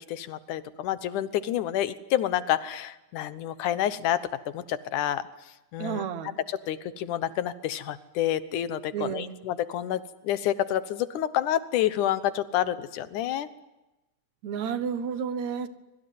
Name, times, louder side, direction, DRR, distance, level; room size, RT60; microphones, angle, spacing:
voice 1, 0.1-5.3 5.7-6.0 6.5-13.5, left 11 dB, 90° left, 14 dB, 2.6 m, -28 dB
voice 2, 5.8-6.4 8.9-9.4 14.4-15.7, right 7 dB, 70° right, 11 dB, 2.7 m, -31 dB
25.5 x 22.0 x 9.5 m, 1.0 s
omnidirectional pair, 3.4 m